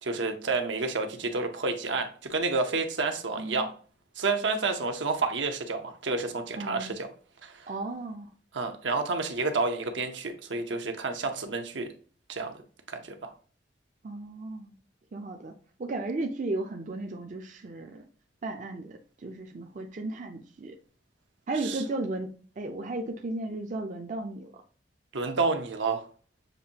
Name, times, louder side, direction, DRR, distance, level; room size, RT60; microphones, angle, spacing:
voice 1, 0.0-3.7 4.2-7.1 7.4-7.7 8.5-11.9 12.3-12.6 12.9-13.3 21.6-21.8 25.1-26.0, right 3 dB, 85° right, 5 dB, 0.8 m, -30 dB
voice 2, 6.6-7.0 7.7-8.3 14.0-14.7 15.1-15.5 15.8-18.1 18.4-20.7 21.5-24.5, right 2 dB, 45° right, 2 dB, 0.4 m, -35 dB
6.6 x 2.6 x 2.8 m, 0.40 s
head